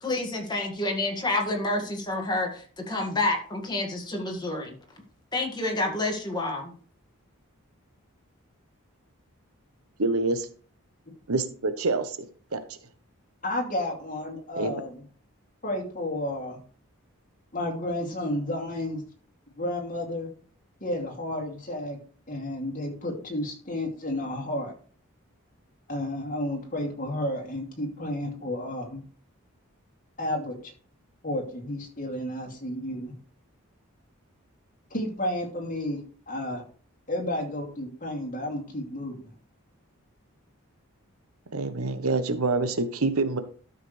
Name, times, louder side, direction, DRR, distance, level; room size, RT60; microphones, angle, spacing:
voice 1, 0.0-4.8 5.3-6.7, left 2 dB, 20° left, 1.9 m, -28 dB
voice 2, 10.0-10.5 11.3-12.2 12.5-12.6 14.5-14.8 41.5-43.4, right 3 dB, 75° right, 1.0 m, -26 dB
voice 3, 13.4-15.0 15.6-16.6 17.5-19.0 19.5-20.3 20.8-22.0 22.3-24.7 25.9-29.0 30.2-30.7 31.2-33.1 34.9-36.0 36.3-36.6 37.1-39.2, left 1 dB, 35° left, 2.5 m, -31 dB
12.5 x 6.6 x 3.3 m
head